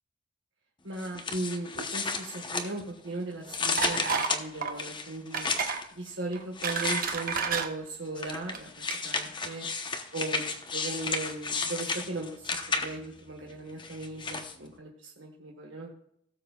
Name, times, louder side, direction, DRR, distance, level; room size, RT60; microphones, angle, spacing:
voice 1, 0.8-5.5 5.9-9.7 10.1-15.9, right 2 dB, 75° right, 0 dB, 1.4 m, -37 dB
sound 1, 1.0-3.1 3.5-5.8 6.6-7.6 8.2-13.2 13.8-14.6, left 4 dB, 25° left, 0.9 m, -33 dB
sound 2, 3.8-4.3 4.6-4.8 5.3-5.8 6.3-7.7 8.4-8.6 8.9-9.0, right 5 dB, 50° right, 1.1 m, -30 dB
17.5 x 7.3 x 2.3 m, 0.74 s
head